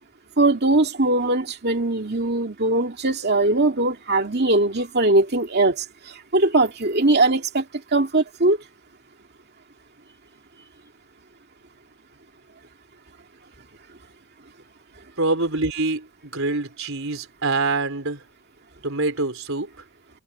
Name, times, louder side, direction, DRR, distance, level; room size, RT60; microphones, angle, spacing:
voice 1, 0.4-7.7 7.9-8.6, right 2 dB, 45° right, 2.4 m, -20 dB
voice 2, 15.2-18.2 18.8-19.7, right 3 dB, 65° right, 5.2 m, -25 dB
head